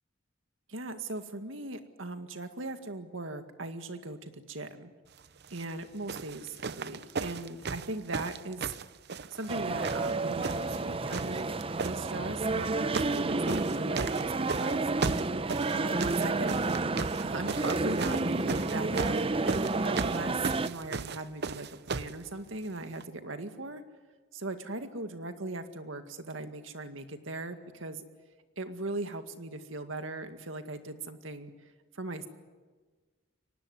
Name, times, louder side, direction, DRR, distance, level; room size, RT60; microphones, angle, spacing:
voice 1, 0.7-4.9 5.5-8.7 9.3-14.9 15.7-19.3 19.8-23.8 24.3-28.0 28.6-31.5 31.9-32.3, right 2 dB, 80° right, 8 dB, 2.0 m, -39 dB
sound 1, 5.4-5.7 6.1-9.6 9.8-10.8 11.1-12.0 12.6-13.2 13.5-22.2 23.0-23.1, right 4 dB, 55° right, 0.8 m, -36 dB
sound 2, 9.5-20.7, right 3 dB, 30° right, 0.7 m, -30 dB
23.5 x 19.0 x 9.6 m, 1.4 s
head